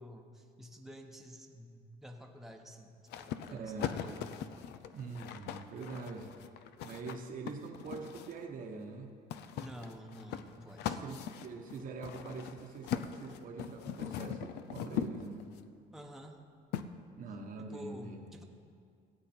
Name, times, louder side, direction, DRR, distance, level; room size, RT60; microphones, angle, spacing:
voice 1, 0.0-4.2 9.5-11.2 15.9-16.4 17.6-18.4, equal, ahead, 2 dB, 1.0 m, -50 dB
sound 1, 3.1-8.4 9.3-15.6 16.7-16.8, left 9 dB, 80° left, 0.5 m, -40 dB
voice 2, 3.5-4.4 4.9-6.4 6.8-9.2 10.7-15.5 17.2-18.2, right 4 dB, 55° right, 2 dB, 1.1 m, -44 dB
15.5 x 8.1 x 4.4 m, 2.3 s
cardioid pair, 110°, 17 cm